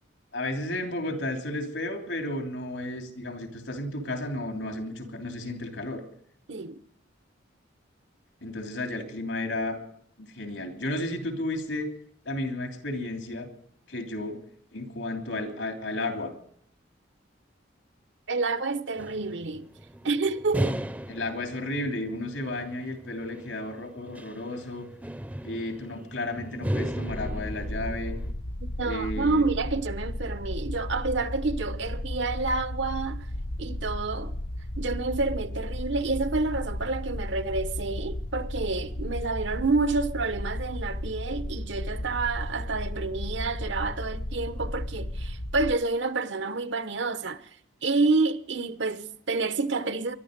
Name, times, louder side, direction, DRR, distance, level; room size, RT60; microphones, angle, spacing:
voice 1, 0.3-6.0 8.4-9.8 10.2-11.9 12.2-13.5 13.9-14.4 14.7-16.3 21.1-24.9 25.4-28.1 28.8-29.4, left 1 dB, 80° left, 3.2 m, -33 dB
voice 2, 6.5-6.8 18.3-19.7 20.0-20.8 28.8-33.3 33.6-34.3 34.8-47.5 47.8-50.2, right 3 dB, 70° right, 1.0 m, -28 dB
sound 1, 19.0-28.3, equal, 10° right, 0.6 m, -36 dB
sound 2, 27.1-45.7, left 1 dB, 55° left, 1.0 m, -34 dB
22.0 x 12.0 x 5.3 m
head